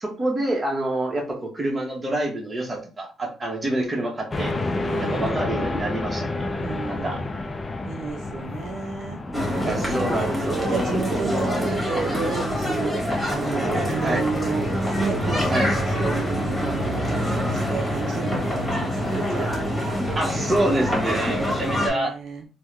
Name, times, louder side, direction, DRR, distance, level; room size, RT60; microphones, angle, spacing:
voice 1, 0.0-4.5 5.0-6.5 6.8-7.2 9.3-10.7 14.0-14.2 15.5-15.7 20.1-22.1, right 1 dB, 25° right, 1 dB, 1.1 m, -27 dB
sound 1, 4.3-21.0, left 2 dB, 30° left, 0.4 m, -33 dB
voice 2, 4.9-5.3 6.6-7.2 7.9-9.2 9.8-10.1 10.7-19.6 21.3-22.5, right 5 dB, 65° right, 3 dB, 0.5 m, -32 dB
sound 2, 9.3-21.9, equal, 10° left, 1.5 m, -25 dB
3.4 x 2.2 x 3.1 m, 0.33 s
cardioid pair, 90°, 0 cm